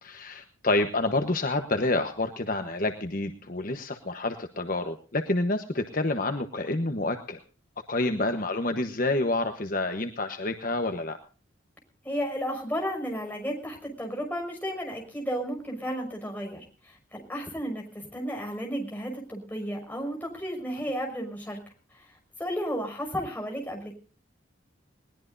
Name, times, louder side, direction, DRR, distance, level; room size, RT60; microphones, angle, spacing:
voice 1, 0.0-7.4 7.9-11.2, left 2 dB, 45° left, 6 dB, 1.1 m, -28 dB
voice 2, 12.0-21.6 21.9-22.1 22.4-23.9, equal, 10° left, 1 dB, 5.9 m, -33 dB
21.0 x 19.5 x 2.6 m, 0.37 s
head